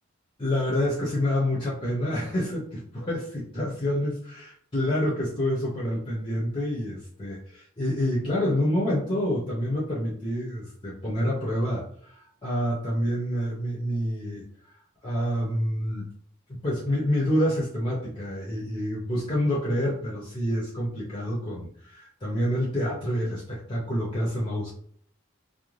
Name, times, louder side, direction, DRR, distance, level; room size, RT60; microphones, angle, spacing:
voice 1, 0.4-14.5 15.0-16.1 16.6-24.7, equal, 25° left, -5 dB, 0.6 m, -27 dB
2.5 x 2.1 x 3.1 m, 0.62 s
head